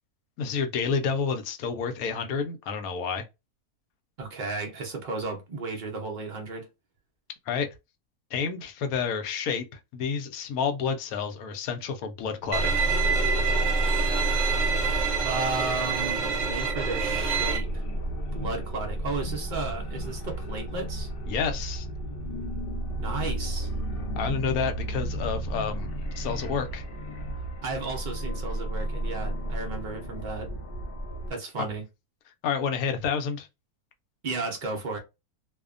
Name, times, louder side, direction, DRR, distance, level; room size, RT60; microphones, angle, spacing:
voice 1, 0.4-3.2 7.5-7.7 8.3-9.6 9.9-12.8 21.3-21.9 24.2-25.9 26.2-26.8 32.4-33.5, left 6 dB, 70° left, 1.0 m, -29 dB
voice 2, 4.2-6.7 15.2-17.8 18.3-21.1 23.0-23.7 27.6-30.5 31.3-31.8 34.2-35.0, right 3 dB, 75° right, 0.4 m, -34 dB
sound 1, 12.5-31.3, right 1 dB, 50° left, 0.7 m, -31 dB
Bowed string instrument, 12.5-17.6, right 6 dB, 60° right, 0.9 m, -28 dB
2.7 x 2.1 x 2.4 m
omnidirectional pair, 1.6 m